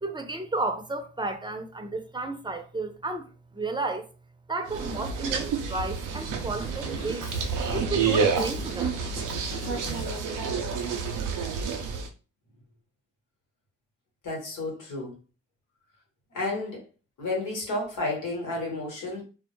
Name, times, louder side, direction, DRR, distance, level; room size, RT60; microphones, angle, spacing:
voice 1, 0.0-4.1 4.5-7.3 7.7-9.0, right 3 dB, 15° right, 0.6 m, -32 dB
sound 1, 4.7-12.1, right 5 dB, 85° right, 0.5 m, -29 dB
Drum kit, 6.1-10.3, left 2 dB, 45° left, 0.9 m, -43 dB
voice 2, 14.2-15.1 16.3-16.8 17.2-19.2, left 2 dB, 80° left, 1.1 m, -31 dB
2.1 x 2.0 x 3.0 m
supercardioid pair, 40°, 30 cm